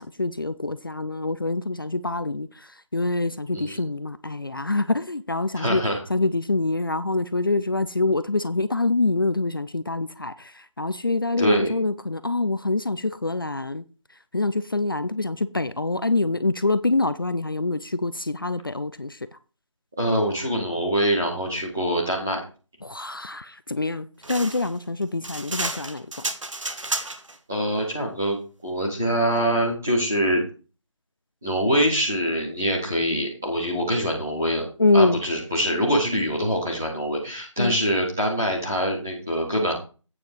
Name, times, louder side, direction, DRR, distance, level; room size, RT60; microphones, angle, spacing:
voice 1, 0.0-5.8 6.1-13.8 14.3-19.4 22.8-26.1 34.8-35.2 37.6-37.7, left 2 dB, 45° left, 0.5 m, -25 dB
voice 2, 3.5-3.8 5.5-6.0 11.4-11.7 20.0-22.4 27.5-28.4 28.6-30.4 31.4-34.6 34.9-39.7, equal, 5° right, 0.8 m, -24 dB
sound 1, 24.2-27.4, right 2 dB, 75° right, 1.6 m, -31 dB
8.9 x 6.6 x 4.7 m
figure-of-eight pair, 175°, 16 cm